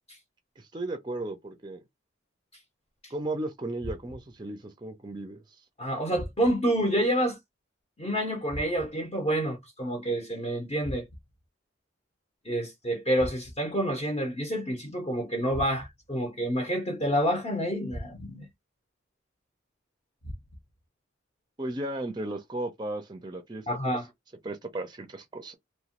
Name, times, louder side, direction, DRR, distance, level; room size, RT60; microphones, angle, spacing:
voice 1, 0.6-1.8 3.1-5.4 21.6-23.6 24.4-25.6, right 2 dB, 20° right, 0.4 m, -35 dB
sound 1, 3.8-4.4 6.1-6.8 8.5-9.1 10.8-11.5 13.2-13.8 15.5-16.1 17.9-18.5 20.2-20.8, equal, 80° left, 1.0 m, -42 dB
voice 2, 5.8-7.4 8.0-11.1 12.4-18.5 23.7-24.1, equal, 30° left, 0.6 m, -28 dB
3.0 x 2.1 x 2.9 m
head